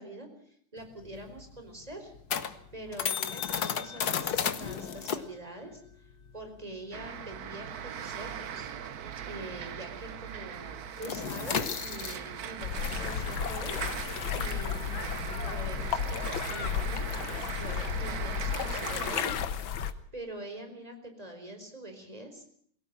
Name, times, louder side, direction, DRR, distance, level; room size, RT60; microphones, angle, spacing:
voice 1, 0.0-2.1 2.7-5.8 6.3-22.4, right 1 dB, 15° right, 5 dB, 4.6 m, -45 dB
sound 1, 0.8-9.7 10.0-10.3 10.6-16.3, left 8 dB, 55° left, 1.6 m, -35 dB
sound 2, 6.9-19.2, right 8 dB, 55° right, 1.3 m, -40 dB
sound 3, 12.6-19.9, left 8 dB, 70° left, 1.9 m, -33 dB
23.0 x 17.0 x 7.3 m, 0.64 s
omnidirectional pair, 2.3 m